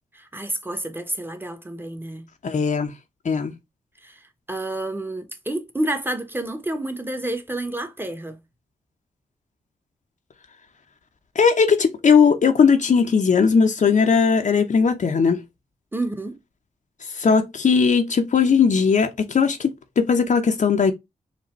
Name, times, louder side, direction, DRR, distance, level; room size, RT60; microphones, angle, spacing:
voice 1, 0.1-2.3 4.0-4.2 4.5-8.4 15.9-16.4, right 1 dB, 15° right, 1.0 m, -29 dB
voice 2, 2.4-2.9 3.2-3.5 11.4-15.4 17.2-20.9, left 5 dB, 55° left, 0.7 m, -18 dB
4.0 x 2.2 x 4.3 m
supercardioid pair, 40°, 15 cm